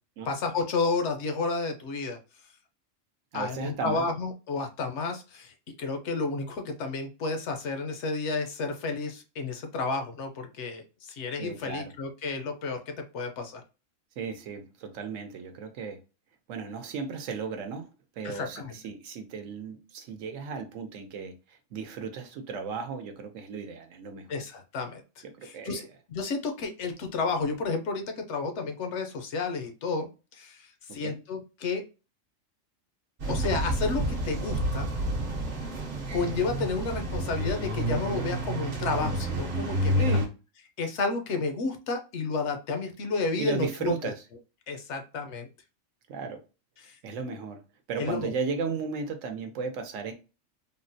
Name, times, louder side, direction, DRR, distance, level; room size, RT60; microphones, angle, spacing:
voice 1, 0.3-2.2 3.3-13.6 18.2-18.8 24.3-31.8 33.3-34.9 36.1-40.2 40.8-44.1 44.7-45.5 46.8-47.0 48.0-48.3, left 4 dB, 70° left, 5 dB, 0.8 m, -31 dB
voice 2, 3.3-4.0 11.4-11.9 14.2-16.0 16.5-17.9 18.2-24.3 25.4-25.8 31.0-31.2 40.0-40.2 43.4-44.1 46.1-46.4 47.0-47.6 47.9-50.1, right 5 dB, 75° right, 6 dB, 1.0 m, -35 dB
sound 1, 33.2-40.3, right 1 dB, 50° right, 0.9 m, -29 dB
3.7 x 2.0 x 2.6 m, 0.31 s
omnidirectional pair, 1.4 m